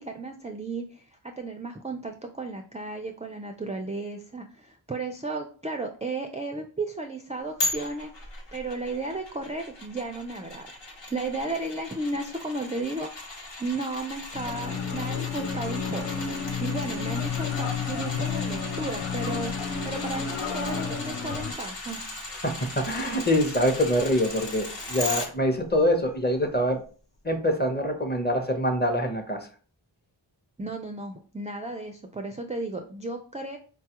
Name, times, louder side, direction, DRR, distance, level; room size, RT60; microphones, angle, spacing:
voice 1, 0.0-13.1 13.6-16.3 16.6-22.0 30.6-33.6, right 2 dB, 15° right, 4 dB, 0.3 m, -34 dB
sound 1, 7.6-25.3 25.7-25.8, left 2 dB, 65° left, 1.0 m, -37 dB
sound 2, 14.3-21.5, left 6 dB, 90° left, 0.5 m, -31 dB
voice 2, 22.4-26.8 27.2-29.5, equal, 20° left, 4 dB, 0.7 m, -25 dB
3.9 x 2.3 x 2.8 m, 0.40 s
wide cardioid pair, 45°, 47 cm